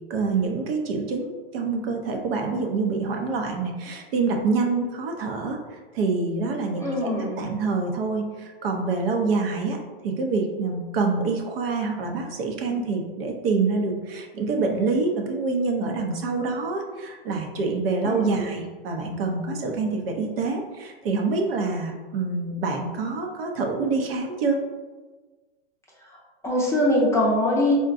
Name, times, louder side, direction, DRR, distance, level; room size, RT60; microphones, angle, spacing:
voice 1, 0.1-5.6 5.9-9.8 10.0-24.6, right 4 dB, 70° right, 2 dB, 0.6 m, -26 dB
voice 2, 6.8-7.4 18.0-18.5 26.4-27.7, left 1 dB, 10° left, -4 dB, 0.5 m, -22 dB
3.7 x 2.2 x 2.5 m, 1.3 s
hypercardioid pair, 120°, 30 cm